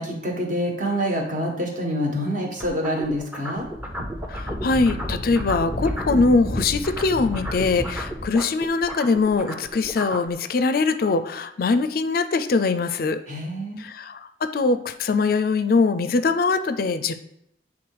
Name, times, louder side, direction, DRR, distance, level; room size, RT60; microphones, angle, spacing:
voice 1, 0.0-3.6 13.3-13.8, equal, 45° right, 0 dB, 1.5 m, -26 dB
sound 1, 2.6-6.3 6.5-10.3, equal, 10° right, 0.7 m, -34 dB
Wind, 3.7-8.4, equal, 25° right, 1.2 m, -31 dB
voice 2, 4.3-13.2 13.8-17.1, left 4 dB, 55° left, 10 dB, 0.4 m, -22 dB
7.8 x 3.6 x 4.8 m, 0.80 s
head